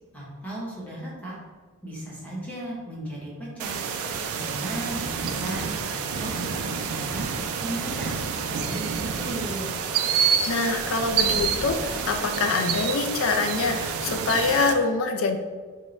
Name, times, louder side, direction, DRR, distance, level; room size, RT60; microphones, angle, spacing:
voice 1, 0.1-1.3 1.8-3.8 4.3-7.3 7.6-8.1 8.4-8.9 9.1-9.8, right 1 dB, 5° left, -6 dB, 0.8 m, -36 dB
sound 1, 3.6-14.7, right 6 dB, 85° right, 0.3 m, -28 dB
sound 2, 10.4-13.4, equal, 35° right, 0.5 m, -41 dB
voice 2, 10.5-15.4, left 4 dB, 70° left, 5 dB, 0.4 m, -25 dB
3.7 x 2.1 x 3.1 m, 1.5 s
head